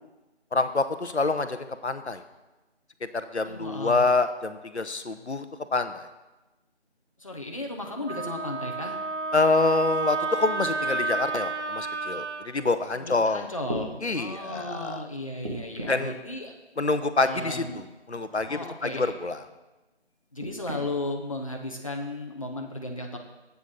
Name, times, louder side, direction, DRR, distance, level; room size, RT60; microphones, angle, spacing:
voice 1, 0.5-2.2 3.1-5.4 5.7-6.1 9.3-13.5 14.0-15.0 15.9-16.1 16.8-19.4, left 3 dB, 75° left, 10 dB, 1.0 m, -26 dB
voice 2, 3.4-4.1 7.2-9.0 12.9-16.5 17.2-17.8 18.5-19.1 20.3-23.2, left 1 dB, 30° left, 1 dB, 1.0 m, -35 dB
Wind instrument woodwind instrument, 8.1-12.5, right 3 dB, 80° right, 0.9 m, -30 dB
sound 1, 13.6-13.9 15.4-16.1 17.4-17.7 18.3-18.5 20.4-20.8 21.7-21.8, right 1 dB, 30° right, 1.4 m, -37 dB
12.5 x 8.4 x 3.9 m, 1.1 s
figure-of-eight pair, 165°, 34 cm